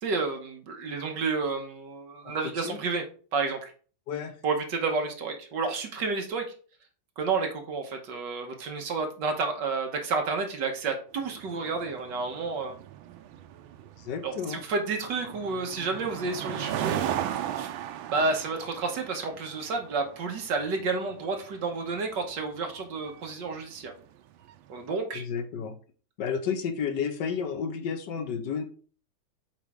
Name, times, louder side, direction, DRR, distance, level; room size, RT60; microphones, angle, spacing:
voice 1, 0.0-3.0 3.3-3.7 4.4-6.5 7.2-12.8 14.2-17.2 17.6-17.7 18.1-23.9 24.7-25.2, right 4 dB, 65° right, 4 dB, 1.7 m, -30 dB
sound 1, 11.2-24.7, right 10 dB, 85° right, 1.4 m, -37 dB
voice 2, 14.1-14.6 25.1-25.7 26.2-28.6, left 6 dB, 65° left, 7 dB, 1.4 m, -31 dB
7.2 x 4.6 x 3.6 m, 0.41 s
omnidirectional pair, 2.1 m